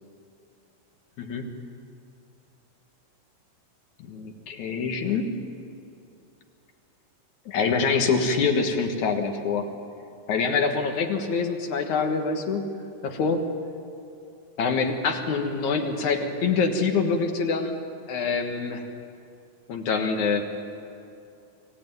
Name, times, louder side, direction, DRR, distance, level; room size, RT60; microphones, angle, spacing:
voice 1, 1.2-1.5 4.1-5.3 7.5-9.7 10.3-12.7 13.0-13.4 14.6-17.8 18.1-18.9 19.7-20.5, left 5 dB, 65° left, 4 dB, 2.7 m, -25 dB
24.5 x 16.0 x 9.4 m, 2.6 s
omnidirectional pair, 3.9 m